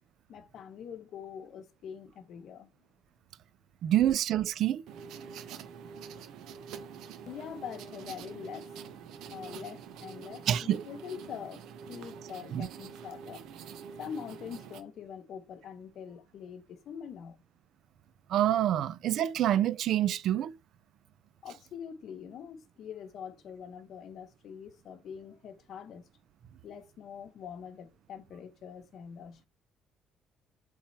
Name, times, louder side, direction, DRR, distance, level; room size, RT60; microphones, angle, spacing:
voice 1, 0.3-2.7 7.3-8.8 9.1-13.4 14.0-17.4 21.4-26.1 26.6-29.5, left 7 dB, 50° left, 0.9 m, -44 dB
voice 2, 3.8-4.8 10.5-10.8 12.5-12.7 18.3-20.5, right 11 dB, 55° right, 0.4 m, -27 dB
sound 1, 4.9-14.8, right 6 dB, 75° right, 0.9 m, -46 dB
7.3 x 3.6 x 4.4 m
cardioid pair, 170°, 0 cm